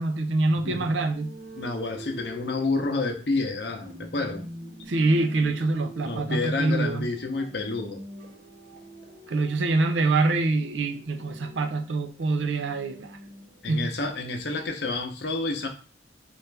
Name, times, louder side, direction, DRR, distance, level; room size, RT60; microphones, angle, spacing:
voice 1, 0.0-1.3 4.9-7.1 9.3-13.1 13.7-13.9, right 2 dB, 80° right, 0.5 m, -25 dB
voice 2, 0.6-0.9 1.6-4.5 6.0-8.0 13.6-15.7, left 3 dB, 60° left, 0.7 m, -29 dB
sound 1, 1.0-14.7, equal, 45° right, 0.7 m, -45 dB
4.2 x 2.4 x 3.3 m
head